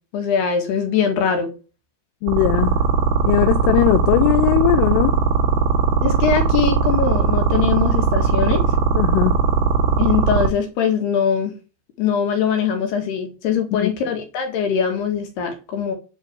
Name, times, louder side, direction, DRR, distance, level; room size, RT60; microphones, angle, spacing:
voice 1, 0.1-1.5 6.0-8.6 10.0-11.5 12.0-15.9, left 7 dB, 60° left, 3.5 m, -22 dB
voice 2, 2.2-2.8 3.2-5.2 8.9-9.4 13.8-13.9, left 16 dB, 80° left, 3.2 m, -19 dB
sound 1, 2.3-10.5, right 6 dB, 75° right, 4.7 m, -18 dB
10.5 x 4.6 x 7.8 m
omnidirectional pair, 5.9 m